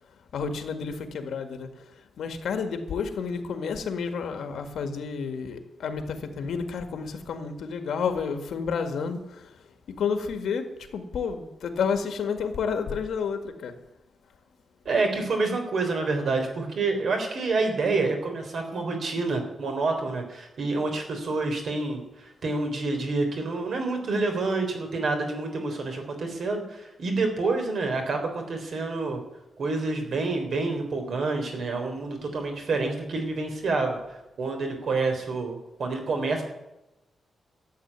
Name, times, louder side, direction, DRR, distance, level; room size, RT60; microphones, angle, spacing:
voice 1, 0.3-9.5 9.9-13.7, left 6 dB, 85° left, 7 dB, 1.9 m, -30 dB
voice 2, 14.9-29.2 29.6-34.0 34.4-36.4, right 3 dB, 55° right, 4 dB, 3.6 m, -28 dB
13.0 x 8.2 x 9.6 m, 0.92 s
wide cardioid pair, 160°, 0 cm